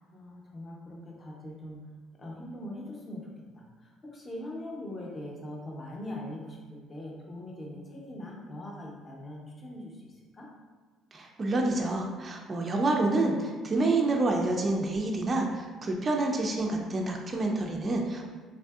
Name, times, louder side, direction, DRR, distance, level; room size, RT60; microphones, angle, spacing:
voice 1, 0.1-1.8 2.2-3.3 3.5-10.5, left 1 dB, 25° left, -2 dB, 0.6 m, -41 dB
voice 2, 11.1-18.3, right 2 dB, 30° right, 1 dB, 0.3 m, -28 dB
3.4 x 2.5 x 2.3 m, 1.5 s
cardioid pair, 125°, 0 cm